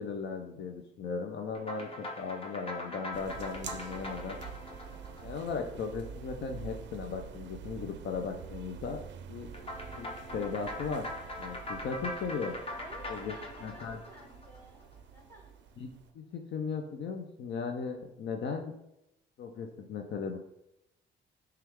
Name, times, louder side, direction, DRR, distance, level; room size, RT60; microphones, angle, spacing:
voice 1, 0.0-4.4 5.2-9.0 9.3-9.5 10.0-10.1 10.3-11.0 11.3-12.6 13.1-13.3 13.6-14.0 15.8-18.7 19.4-20.4, left 5 dB, 65° left, 3 dB, 0.5 m, -37 dB
sound 1, 1.5-6.2 9.5-15.0, left 1 dB, 30° left, 0.8 m, -42 dB
sound 2, 3.1-16.1, right 8 dB, 65° right, 0.4 m, -47 dB
voice 2, 12.8-15.6, equal, 10° left, -2 dB, 1.5 m, -54 dB
5.8 x 2.4 x 3.5 m, 0.83 s
cardioid pair, 90°, 20 cm